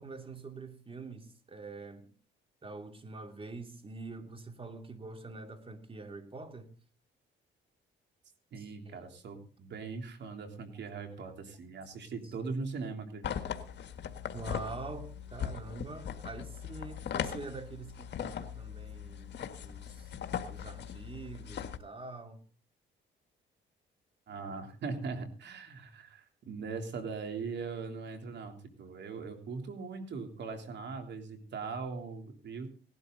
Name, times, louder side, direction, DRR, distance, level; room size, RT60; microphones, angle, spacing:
voice 1, 0.0-2.1 2.6-6.7 8.6-9.1 14.3-19.3 19.6-20.1 20.5-22.4 24.6-24.7, right 3 dB, 30° right, 2.8 m, -45 dB
voice 2, 8.5-13.2 24.3-32.7, right 4 dB, 60° right, 3.4 m, -40 dB
sound 1, 13.2-21.8, left 8 dB, 60° left, 1.7 m, -39 dB
18.0 x 12.5 x 3.9 m
cardioid pair, 90°, 20 cm